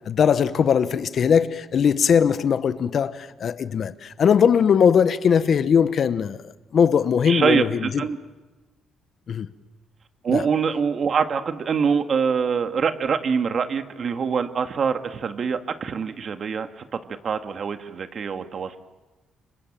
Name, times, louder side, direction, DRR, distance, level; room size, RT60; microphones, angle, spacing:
voice 1, 0.1-6.4 6.7-8.0 9.3-9.5 10.3-10.5, left 7 dB, 55° left, 1.0 m, -20 dB
voice 2, 7.3-8.2 10.2-18.8, right 6 dB, 50° right, 1.9 m, -24 dB
28.5 x 24.5 x 7.5 m
cardioid pair, 90°, 0 cm